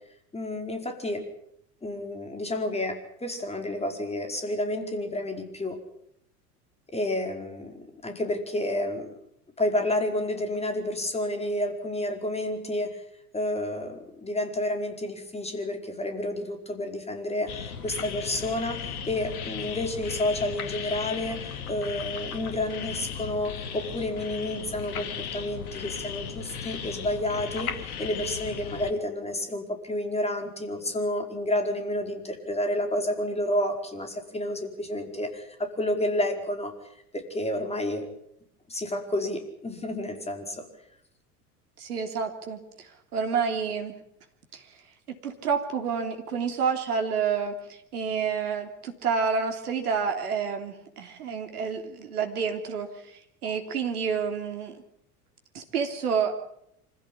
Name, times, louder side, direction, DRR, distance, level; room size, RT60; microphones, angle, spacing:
voice 1, 0.3-1.2 1.8-5.8 6.9-9.1 9.6-13.0 13.3-36.7 37.1-38.1 38.7-40.7, left 1 dB, 15° left, 5 dB, 4.8 m, -30 dB
sound 1, 17.5-28.9, left 7 dB, 65° left, 2.4 m, -36 dB
voice 2, 41.8-44.0 44.5-44.6 45.1-54.8 55.5-56.4, right 6 dB, 70° right, 4 dB, 3.3 m, -29 dB
25.5 x 16.0 x 8.7 m, 0.76 s
figure-of-eight pair, 75°, 46 cm